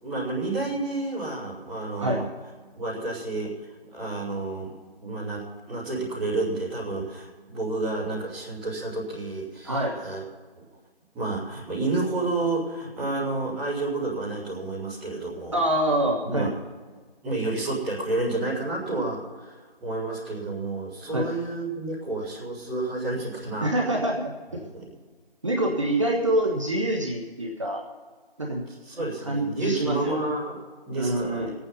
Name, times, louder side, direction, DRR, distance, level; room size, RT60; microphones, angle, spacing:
voice 1, 0.0-2.3 2.7-3.5 3.9-10.2 10.5-10.6 11.1-15.6 16.2-16.5 17.2-23.7 24.5-25.0 28.8-30.6 30.9-31.5, right 2 dB, 5° right, -14 dB, 1.7 m, -30 dB
voice 2, 15.5-16.5 21.1-21.3 23.6-24.6 25.4-27.8 28.4-28.6 29.3-30.2 31.0-31.5, right 1 dB, 30° right, 0 dB, 1.3 m, -25 dB
21.0 x 8.8 x 5.5 m, 1.5 s
figure-of-eight pair, 170°, 30 cm